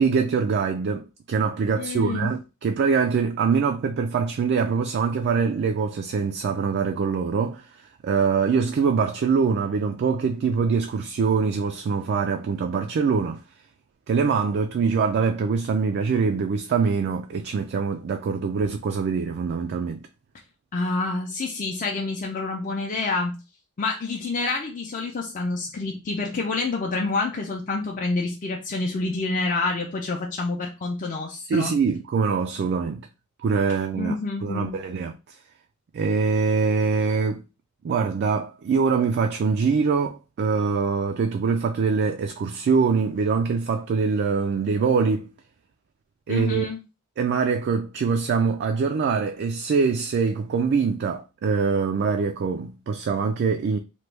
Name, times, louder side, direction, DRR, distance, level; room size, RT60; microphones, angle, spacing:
voice 1, 0.0-7.6 8.0-13.4 14.1-20.0 31.5-33.1 33.4-34.2 34.4-35.1 35.9-37.4 37.8-45.3 46.3-46.7 47.2-53.8, right 5 dB, 50° right, 0.3 m, -23 dB
voice 2, 1.8-2.3 20.7-23.4 23.8-31.7 33.9-34.7 46.3-46.8, left 3 dB, 40° left, 0.5 m, -28 dB
3.0 x 2.2 x 3.2 m
head